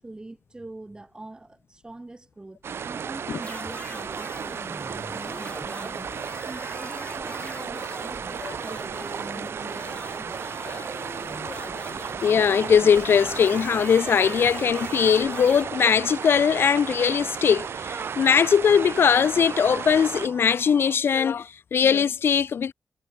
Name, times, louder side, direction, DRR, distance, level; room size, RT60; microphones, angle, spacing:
voice 1, 0.0-6.1 6.4-9.9, right 2 dB, 20° right, 3.9 m, -44 dB
sound 1, 2.6-20.3, right 7 dB, 85° right, 1.9 m, -34 dB
sound 2, 3.4-15.7, left 3 dB, 35° left, 1.8 m, -42 dB
sound 3, 12.0-21.0, right 5 dB, 60° right, 7.5 m, -43 dB
voice 2, 12.2-22.7, left 7 dB, 70° left, 0.4 m, -21 dB
wide cardioid pair, 120°, 4 cm